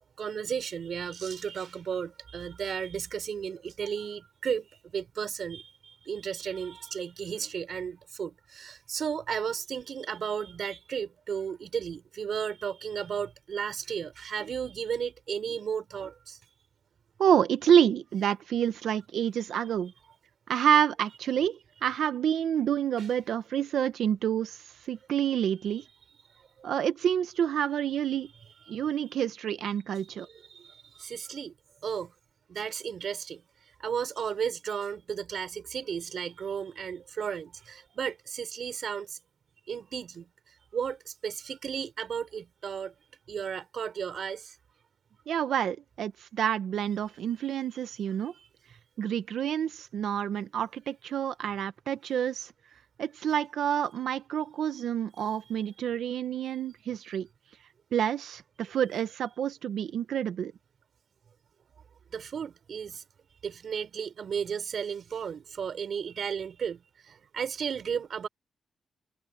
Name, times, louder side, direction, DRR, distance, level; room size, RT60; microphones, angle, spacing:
voice 1, 0.2-4.7 4.9-16.4 23.0-23.1 28.7-28.8 30.2-31.5 31.8-32.1 32.5-33.4 33.8-39.2 39.7-40.3 40.7-42.9 43.3-44.6 47.7-48.5 62.1-63.0 63.4-68.3, right 7 dB, 60° right, 4.7 m, -34 dB
voice 2, 17.2-19.9 20.5-24.6 24.9-25.8 26.6-28.3 28.7-30.3 45.3-48.3 49.0-52.5 53.0-57.3 57.9-60.5, right 9 dB, 80° right, 1.1 m, -28 dB
cardioid pair, 105°, 0 cm